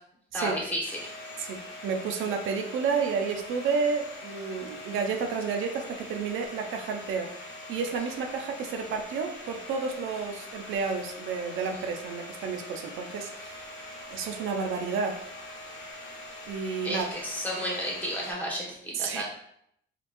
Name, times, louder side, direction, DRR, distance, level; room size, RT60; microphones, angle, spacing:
voice 1, 0.3-0.9 16.8-19.2, equal, 10° left, -3 dB, 1.4 m, -32 dB
Domestic sounds home sounds, 0.8-18.3, left 1 dB, 85° left, 0.9 m, -43 dB
voice 2, 1.4-7.4 7.7-13.6 14.1-15.3 16.5-17.1 18.9-19.2, right 5 dB, 85° right, 4 dB, 0.5 m, -31 dB
4.1 x 3.2 x 2.5 m, 0.71 s
cardioid pair, 90°, 20 cm